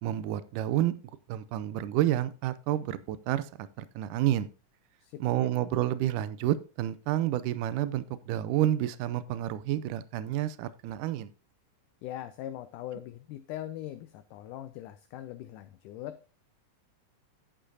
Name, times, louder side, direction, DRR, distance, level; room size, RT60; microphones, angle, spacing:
voice 1, 0.0-0.9 1.3-4.5 5.2-11.3, right 12 dB, 80° right, 15 dB, 2.1 m, -29 dB
voice 2, 5.0-5.5 12.0-16.2, left 12 dB, 80° left, 10 dB, 2.0 m, -41 dB
10.0 x 9.1 x 2.6 m, 0.33 s
omnidirectional pair, 3.9 m